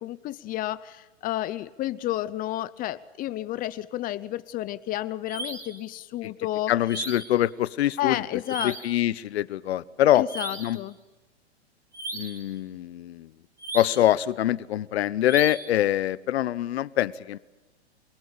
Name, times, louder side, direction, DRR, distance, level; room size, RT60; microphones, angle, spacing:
voice 1, 0.0-6.7 8.0-8.7 10.1-11.0, left 14 dB, 25° left, 16 dB, 0.7 m, -31 dB
sound 1, 5.3-5.8 6.9-7.4 8.5-9.0 10.3-10.8 11.9-12.5 13.6-14.2 15.2-15.8, right 2 dB, 10° right, 3.3 m, -36 dB
voice 2, 6.7-8.2 8.6-10.2 10.6-10.8 12.1-13.3 13.7-17.4, left 13 dB, 65° left, 18 dB, 1.2 m, -24 dB
28.5 x 18.5 x 8.8 m, 1.1 s
hypercardioid pair, 125°, 34 cm